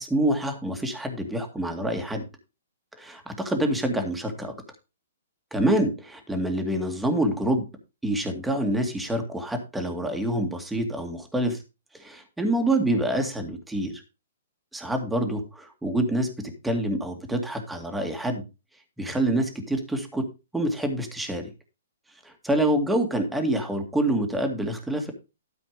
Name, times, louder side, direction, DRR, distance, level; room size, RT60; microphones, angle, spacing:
voice 1, 0.0-2.2 3.0-4.5 5.5-7.7 8.0-11.6 11.9-14.0 14.7-18.4 19.0-20.2 20.5-21.5 22.2-25.1, right 1 dB, 5° right, 4 dB, 2.1 m, -26 dB
12.5 x 5.0 x 5.1 m, 0.28 s
hypercardioid pair, 140°, 0 cm